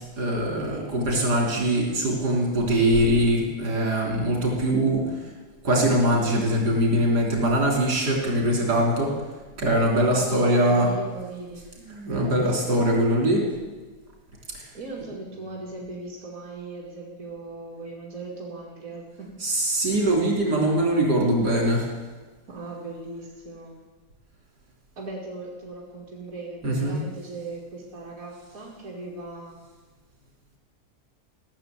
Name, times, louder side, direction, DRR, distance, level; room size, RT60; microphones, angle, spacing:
voice 1, 0.2-5.1 5.6-9.2 9.6-10.9 11.9-13.6 14.5-14.6 19.4-21.9 26.6-27.0, right 1 dB, 80° right, -1 dB, 3.9 m, -22 dB
voice 2, 10.1-11.6 12.1-13.0 14.7-19.3 22.5-23.8 25.0-29.6, right 2 dB, 60° right, -3 dB, 2.8 m, -38 dB
16.5 x 7.0 x 9.3 m, 1.3 s
omnidirectional pair, 1.7 m